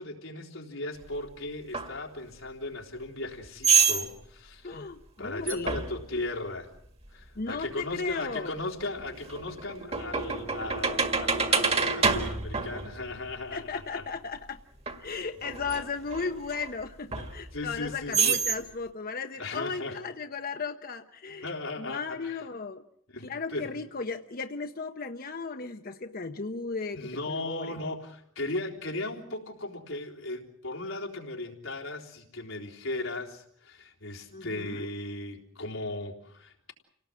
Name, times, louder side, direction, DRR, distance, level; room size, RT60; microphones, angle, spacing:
voice 1, 0.0-4.8 5.2-6.7 7.1-14.0 17.5-18.4 19.4-20.0 21.4-22.4 23.1-23.7 26.9-36.7, left 2 dB, 90° left, -1 dB, 3.7 m, -37 dB
sound 1, 1.7-1.9 3.6-4.1 5.5-6.0 8.1-8.2 8.8-13.4 14.9-15.0 15.4-16.7 17.1-17.8 18.1-18.6, right 5 dB, 30° right, 1.9 m, -27 dB
voice 2, 4.6-5.9 7.4-8.6 13.5-14.6 15.0-22.8 23.2-27.8 34.3-34.9, left 4 dB, 45° left, 7 dB, 0.9 m, -36 dB
29.0 x 18.5 x 7.5 m, 0.69 s
head